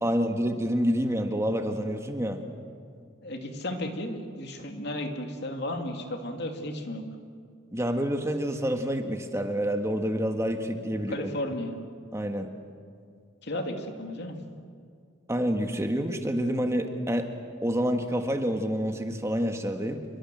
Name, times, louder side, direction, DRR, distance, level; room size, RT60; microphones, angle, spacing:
voice 1, 0.0-2.4 7.7-11.3 12.1-12.5 15.3-17.3 17.6-20.0, equal, 15° right, 5 dB, 1.5 m, -28 dB
voice 2, 3.2-7.0 11.1-11.7 13.4-14.4, left 1 dB, 55° left, 4 dB, 2.7 m, -34 dB
28.0 x 22.5 x 7.7 m, 2.2 s
head